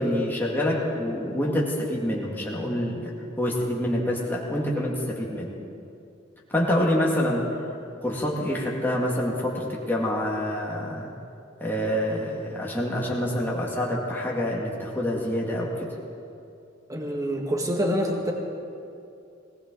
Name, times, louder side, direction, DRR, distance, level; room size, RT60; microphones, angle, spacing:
voice 1, 0.0-3.1 3.4-5.5 6.5-7.7 8.0-11.1 11.6-15.9, left 1 dB, 10° left, -3 dB, 2.0 m, -26 dB
voice 2, 16.9-18.3, equal, 20° right, 0 dB, 1.9 m, -26 dB
19.0 x 19.0 x 3.9 m, 2.6 s
head